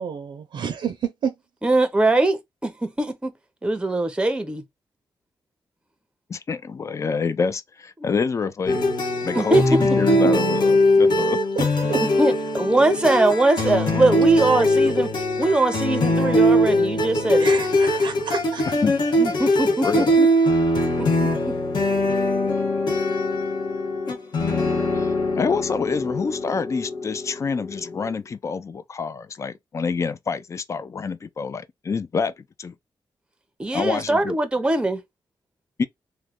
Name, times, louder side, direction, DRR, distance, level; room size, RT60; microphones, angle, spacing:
voice 1, 0.0-1.3 11.2-11.3 11.6-11.7 11.9-12.0 17.4-18.6, right 7 dB, 75° right, 0.6 m, -29 dB
voice 2, 1.6-3.3 3.6-4.6 9.3-9.8 12.0-17.5 19.2-20.3 21.0-21.5 33.6-35.0, right 2 dB, 10° right, 0.6 m, -22 dB
voice 3, 6.3-8.8 9.2-11.4 18.8-19.0 19.8-20.1 24.9-32.3 32.6-32.7 33.7-34.3 35.8-35.9, left 5 dB, 35° left, 0.4 m, -27 dB
sound 1, 8.7-28.0, left 1 dB, 60° left, 1.3 m, -21 dB
3.1 x 2.1 x 3.6 m
wide cardioid pair, 120°, 8 cm